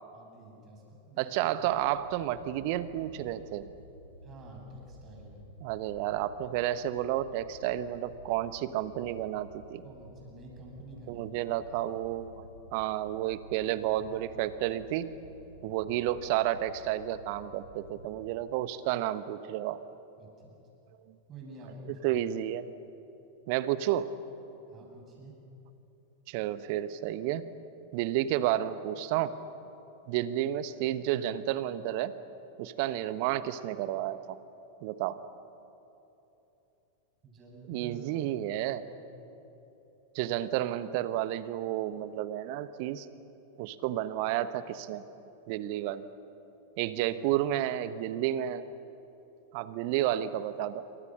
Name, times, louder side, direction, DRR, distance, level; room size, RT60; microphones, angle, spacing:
voice 1, 0.1-1.4 4.2-5.4 9.8-11.4 13.6-14.2 15.6-16.0 20.2-20.6 21.3-22.2 24.7-25.4 37.2-38.0 38.6-39.3, right 1 dB, 30° right, 0 dB, 7.9 m, -49 dB
voice 2, 1.2-3.7 5.6-9.8 11.1-12.4 12.7-15.1 15.6-19.8 21.9-22.7 23.5-24.1 26.3-27.5 27.9-29.3 30.1-32.1 32.6-34.4 34.8-35.2 37.7-38.8 40.1-43.1 43.6-45.1 45.5-46.1 46.8-48.6 49.5-50.8, right 13 dB, 45° right, 14 dB, 1.1 m, -31 dB
Wind / Boat Water vehicle, 1.6-18.1, equal, 90° left, 2.3 m, -52 dB
28.0 x 25.5 x 6.4 m, 3.0 s
figure-of-eight pair, 90°, 0 cm